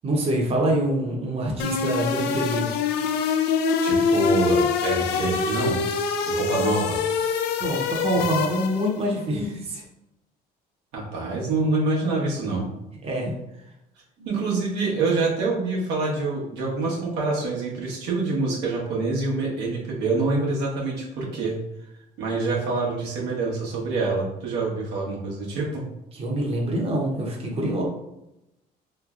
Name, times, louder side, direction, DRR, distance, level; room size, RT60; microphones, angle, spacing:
voice 1, 0.0-2.7 7.6-9.8 13.0-13.3 26.1-27.8, right 1 dB, 35° right, -2 dB, 0.8 m, -25 dB
sound 1, 1.6-9.0, left 5 dB, 80° left, 0.4 m, -24 dB
voice 2, 3.8-5.8 6.3-7.0 10.9-12.7 14.2-21.6 22.2-25.8, right 3 dB, 90° right, -4 dB, 1.1 m, -26 dB
3.2 x 3.1 x 2.4 m, 0.88 s
cardioid pair, 110°, 17 cm